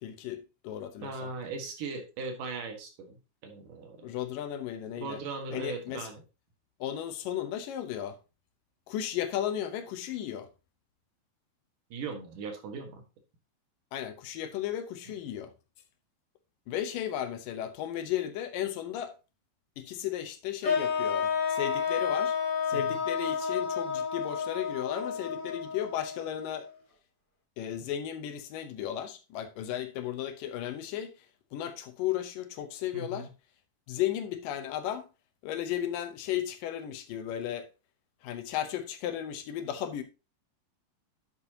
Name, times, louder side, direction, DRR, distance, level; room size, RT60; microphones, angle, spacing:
voice 1, 0.0-1.3 4.0-5.2 5.5-6.1 6.8-8.2 8.9-10.5 13.9-15.5 16.7-19.1 19.8-22.4 22.7-26.7 27.6-31.3 31.5-33.3 33.9-35.1 35.4-37.7 38.2-40.0, left 11 dB, 75° left, 2.5 m, -35 dB
voice 2, 1.0-4.1 5.0-6.2 11.9-13.0 22.7-23.0 32.9-33.3, right 4 dB, 70° right, 3.1 m, -39 dB
sound 1, 20.6-26.7, left 6 dB, 25° left, 3.3 m, -31 dB
11.0 x 6.9 x 2.8 m
omnidirectional pair, 4.0 m